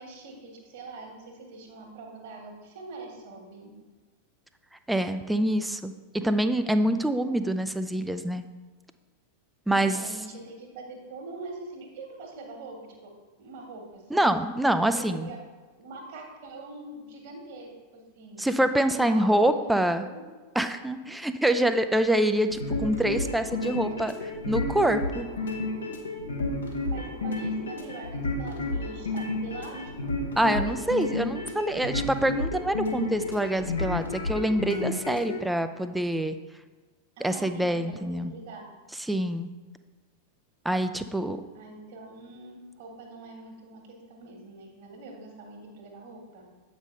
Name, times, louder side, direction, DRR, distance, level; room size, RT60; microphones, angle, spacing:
voice 1, 0.0-3.7 9.7-13.1 13.4-14.3 14.9-15.4 15.8-18.6 18.8-20.2 26.8-30.1 37.2-38.6 41.5-46.4, right 3 dB, 50° right, 1 dB, 1.5 m, -43 dB
voice 2, 4.9-8.4 9.7-10.0 14.1-15.3 18.4-20.1 20.6-24.1 24.5-25.3 30.4-36.4 37.2-38.3 39.1-39.5 40.6-41.4, right 1 dB, 5° right, 9 dB, 0.4 m, -25 dB
sound 1, 22.5-35.4, left 2 dB, 70° left, 1.0 m, -31 dB
8.1 x 5.4 x 3.2 m, 1.3 s
figure-of-eight pair, 90°, 0 cm